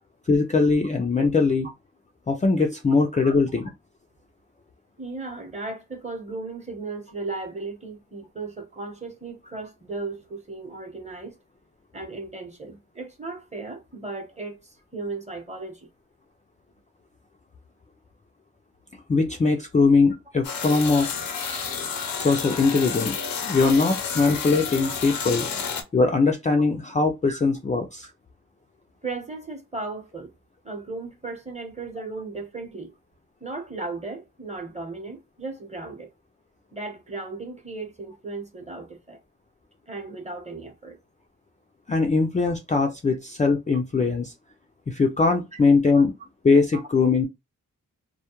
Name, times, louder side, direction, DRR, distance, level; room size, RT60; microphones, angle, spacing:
voice 1, 0.3-1.7 2.3-3.7 19.1-21.1 22.2-25.5 25.9-28.1 41.9-44.3 44.9-46.1 46.4-47.3, left 4 dB, 20° left, 0.4 m, -21 dB
voice 2, 5.0-11.3 11.9-15.9 20.9-21.1 24.8-24.9 27.3-27.4 28.0-28.1 29.0-30.3 30.6-32.9 33.4-36.1 36.7-39.2 39.9-41.0 45.9-46.0 46.7-46.8, right 3 dB, 20° right, 0.9 m, -36 dB
sound 1, 20.4-25.8, left 6 dB, 85° left, 0.6 m, -30 dB
2.2 x 2.1 x 2.9 m
cardioid pair, 65°, 33 cm